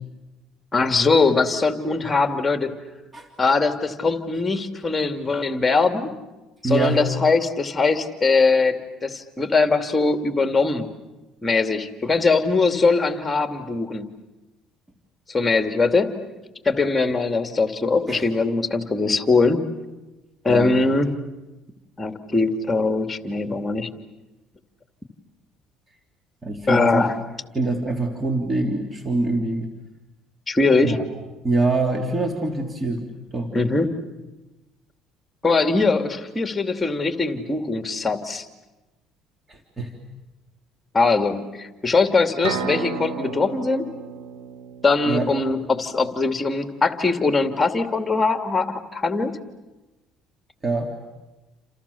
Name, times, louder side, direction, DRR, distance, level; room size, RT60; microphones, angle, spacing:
voice 1, 0.7-2.7 3.4-6.1 6.6-10.9 11.4-14.1 15.3-16.1 16.6-19.6 20.4-21.1 22.0-23.9 26.7-27.1 30.5-31.0 33.5-33.9 35.4-38.5 40.9-43.9 44.8-49.3, left 3 dB, 20° left, 6 dB, 2.6 m, -21 dB
voice 2, 6.6-7.0 18.1-18.2 20.5-20.8 26.4-27.1 27.5-29.7 30.8-31.0 31.4-33.1 33.3-33.5 39.5-39.9 45.1-45.3 50.6-50.9, right 2 dB, 25° right, 3 dB, 3.3 m, -24 dB
sound 1, 42.4-46.2, right 6 dB, 90° right, 3.2 m, -33 dB
29.5 x 28.0 x 7.1 m, 1.1 s
supercardioid pair, 85°, 0 cm